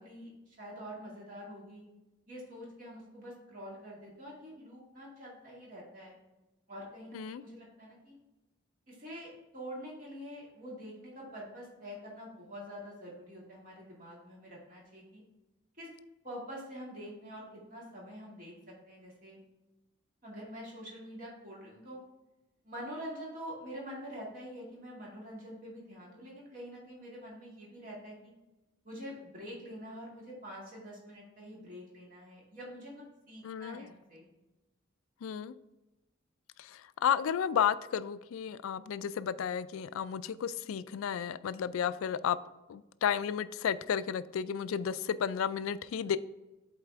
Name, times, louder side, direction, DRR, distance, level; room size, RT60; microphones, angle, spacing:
voice 1, 0.0-1.8 2.3-6.2 6.7-8.2 8.9-15.2 15.8-15.9 16.2-19.4 20.2-22.0 22.6-28.3 28.8-34.3, equal, 40° right, 2.3 m, -46 dB
voice 2, 33.4-33.8 35.2-35.5 36.6-42.4 42.7-46.2, left 8 dB, 80° left, 0.3 m, -32 dB
8.1 x 4.1 x 3.5 m
head